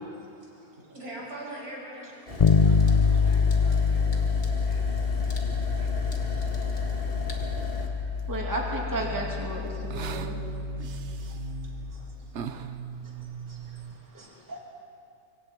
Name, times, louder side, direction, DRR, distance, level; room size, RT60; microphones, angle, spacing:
voice 1, 0.2-1.0 2.6-8.5 9.7-11.4 11.6-13.3 13.6-14.0, right 1 dB, 35° right, -2 dB, 1.9 m, -58 dB
voice 2, 0.8-2.1 2.4-4.8, right 1 dB, 75° right, -4 dB, 6.6 m, -44 dB
sound 1, 2.3-7.9, left 1 dB, 40° left, 2.2 m, -37 dB
Bass guitar, 2.4-12.1, left 5 dB, 55° left, 0.3 m, -26 dB
sound 2, 7.6-13.9, right 7 dB, 55° right, 1.0 m, -40 dB
voice 3, 8.3-10.3 11.2-11.3 13.5-13.6 14.1-14.6, right 1 dB, 10° right, -2 dB, 2.5 m, -33 dB
25.5 x 24.0 x 4.6 m, 2.6 s
omnidirectional pair, 1.6 m